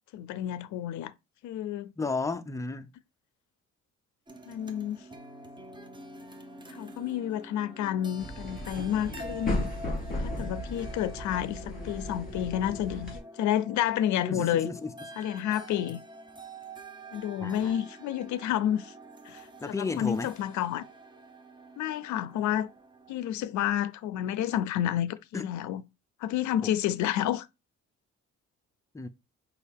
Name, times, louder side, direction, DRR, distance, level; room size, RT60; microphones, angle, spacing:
voice 1, 0.1-1.1 1.4-1.9 4.5-5.0 6.7-9.7 10.2-14.7 15.2-16.0 17.1-18.9 19.3-19.4 19.7-20.8 21.8-22.7 23.1-25.8 26.2-27.5, left 11 dB, 70° left, 0.5 m, -30 dB
voice 2, 2.0-2.9 14.2-14.9 17.4-17.7 19.6-20.3 25.3-25.5 26.6-26.8 28.9-29.1, left 3 dB, 10° left, 0.4 m, -33 dB
sound 1, 4.3-23.1, right 1 dB, 15° right, 0.7 m, -47 dB
sound 2, 8.2-13.2, left 1 dB, 30° left, 2.5 m, -35 dB
5.3 x 2.4 x 3.4 m
cardioid pair, 90°, 30 cm